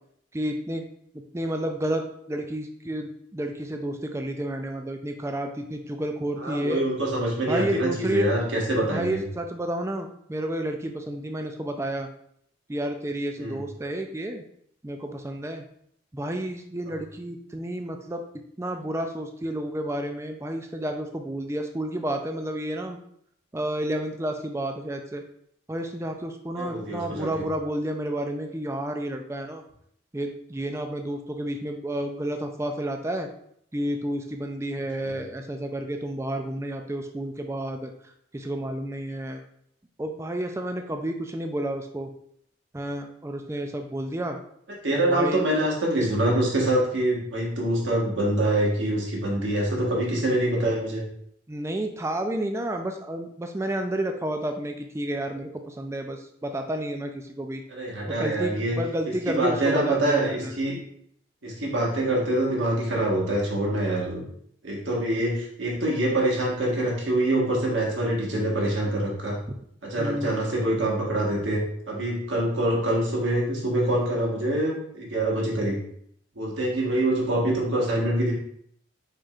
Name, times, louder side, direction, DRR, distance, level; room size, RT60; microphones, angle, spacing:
voice 1, 0.3-0.9 1.3-6.8 7.5-8.3 8.8-12.1 12.7-14.4 14.8-15.6 16.1-18.2 18.6-23.0 23.5-25.2 25.7-29.6 30.1-33.3 33.7-37.9 38.3-39.4 40.0-42.1 42.7-44.4 44.9-45.5 51.5-57.6 58.1-60.5 70.0-70.3, right 1 dB, 15° right, 5 dB, 0.3 m, -30 dB
voice 2, 6.4-9.2 13.4-13.6 26.6-27.4 44.8-51.0 57.7-58.8 59.2-60.8 61.4-64.2 64.6-69.4 69.8-71.6 71.9-75.8 76.3-78.3, right 1 dB, 70° right, -3 dB, 1.5 m, -25 dB
4.8 x 4.4 x 2.4 m, 0.68 s
head